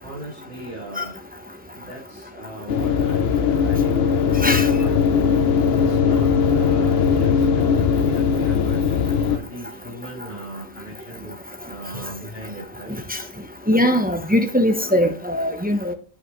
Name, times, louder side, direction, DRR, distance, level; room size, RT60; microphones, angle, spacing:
voice 1, 0.0-1.2 1.7-5.1 5.7-8.8 9.2-11.3 11.7-12.9, right 1 dB, 35° left, -7 dB, 3.5 m, -38 dB
sound 1, 2.7-9.4, left 6 dB, 55° left, 0.8 m, -19 dB
voice 2, 13.7-15.9, left 1 dB, 10° right, 5 dB, 0.6 m, -20 dB
8.2 x 7.8 x 3.1 m, 0.38 s
omnidirectional pair, 1.4 m